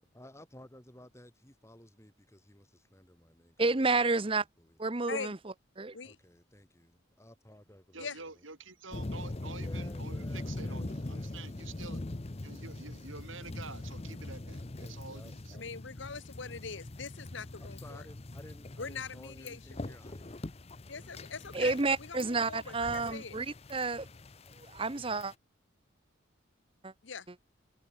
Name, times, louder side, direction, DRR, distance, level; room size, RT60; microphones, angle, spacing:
voice 1, 0.0-4.3 4.6-4.8 6.0-8.4 9.6-11.4 14.8-15.7 17.6-20.5 20.9-21.1, left 1 dB, 15° left, 2.4 m, -55 dB
voice 2, 3.6-4.4 4.8-6.0 21.5-24.1 24.7-25.3 26.8-26.9, right 3 dB, 25° right, 0.8 m, -30 dB
voice 3, 7.9-12.0 12.4-15.6, right 4 dB, 75° right, 3.7 m, -48 dB
sound 1, 8.9-25.3, left 2 dB, 30° left, 0.7 m, -42 dB
voice 4, 15.5-18.0 18.8-19.9 20.9-23.4 27.0-27.3, left 5 dB, 65° left, 1.1 m, -43 dB
head